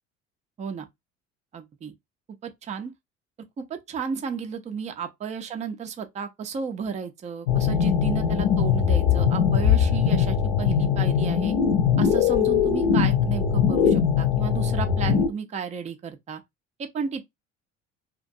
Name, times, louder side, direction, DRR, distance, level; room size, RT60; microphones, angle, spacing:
voice 1, 1.5-1.9 2.4-2.9 3.6-11.5 12.0-16.4 16.8-17.3, right 6 dB, 20° right, 0.4 m, -33 dB
sound 1, 7.5-15.3, left 7 dB, 65° left, 0.7 m, -21 dB
2.5 x 2.2 x 2.6 m
figure-of-eight pair, 60°, 39 cm